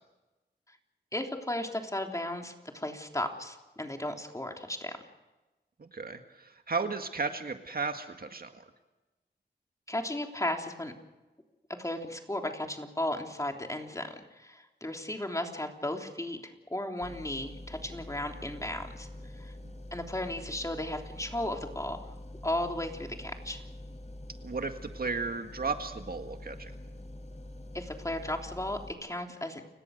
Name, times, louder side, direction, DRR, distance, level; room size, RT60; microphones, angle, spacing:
voice 1, 1.1-5.0 9.9-10.9 11.7-14.1 14.4-19.1 19.4-19.5 19.9-22.0 22.4-23.6 27.7-29.6, left 1 dB, 15° left, 3 dB, 3.3 m, -35 dB
voice 2, 5.8-8.6 24.4-26.7, right 4 dB, 55° right, 6 dB, 1.8 m, -34 dB
sound 1, 17.0-28.9, left 1 dB, 40° left, 3.7 m, -45 dB
30.0 x 17.5 x 6.6 m, 1.1 s
wide cardioid pair, 70°, 18 cm